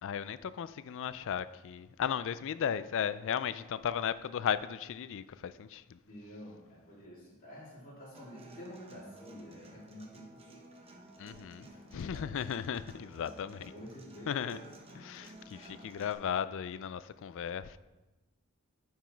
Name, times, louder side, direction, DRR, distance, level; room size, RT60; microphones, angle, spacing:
voice 1, 0.0-6.0 11.2-13.7 14.3-14.6 15.0-17.8, left 8 dB, 60° left, 0.3 m, -36 dB
voice 2, 6.0-10.6 11.6-12.5 13.5-15.0, equal, 40° left, 3.0 m, -49 dB
Human voice / Acoustic guitar, 8.1-16.1, right 1 dB, 25° right, 0.8 m, -54 dB
9.1 x 4.8 x 4.5 m
head